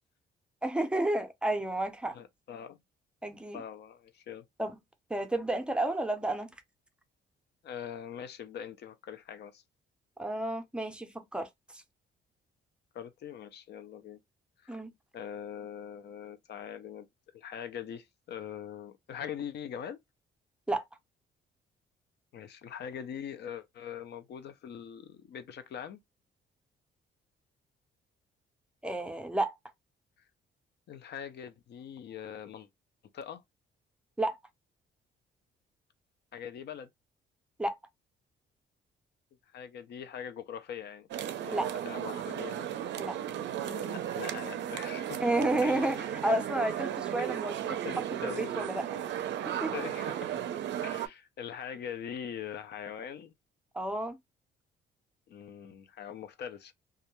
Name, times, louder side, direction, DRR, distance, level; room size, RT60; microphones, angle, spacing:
voice 1, 0.6-2.2 3.2-3.6 4.6-4.7 5.1-6.5 10.2-11.8 14.7-14.9 20.7-20.8 28.8-29.6 34.2-34.4 37.6-37.7 41.5-41.7 43.0-43.2 45.2-47.8 48.2-49.0 49.4-49.7 53.7-54.2, right 1 dB, 5° right, 0.5 m, -31 dB
voice 2, 2.1-2.8 3.5-4.5 7.6-9.6 12.9-14.2 14.6-14.8 15.1-17.1 17.3-20.0 22.3-26.0 30.9-32.7 33.1-33.4 36.3-36.9 39.5-41.1 41.4-41.6 41.8-42.7 43.6-45.3 45.6-46.0 46.2-46.4 46.6-46.8 47.2-47.4 47.8-48.7 49.7-50.3 50.8-53.3 55.3-56.7, left 8 dB, 60° left, 0.4 m, -42 dB
sound 1, 41.1-51.1, right 10 dB, 65° right, 0.4 m, -35 dB
2.3 x 2.1 x 2.9 m
cardioid pair, 90°, 20 cm